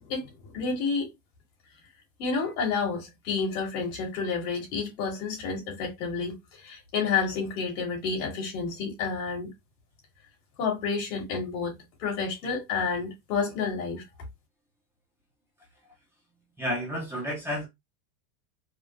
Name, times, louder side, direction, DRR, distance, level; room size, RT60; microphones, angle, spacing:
voice 1, 0.1-1.1 2.2-6.4 6.6-9.5 10.6-14.0, left 5 dB, 90° left, 2.5 m, -30 dB
voice 2, 16.6-17.7, equal, 5° right, 0.5 m, -31 dB
4.8 x 2.1 x 2.5 m
supercardioid pair, 170°, 45 cm